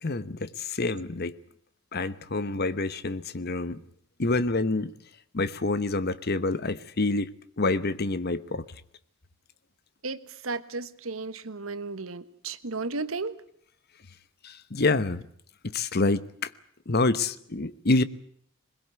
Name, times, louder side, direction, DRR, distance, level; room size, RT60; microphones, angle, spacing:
voice 1, 0.0-1.4 1.9-3.8 4.2-4.9 5.3-7.3 7.6-8.6 14.4-15.2 15.6-16.5 16.9-18.0, left 3 dB, 50° left, 1.0 m, -27 dB
voice 2, 10.0-13.3, right 3 dB, 80° right, 1.4 m, -34 dB
21.5 x 21.0 x 8.0 m
head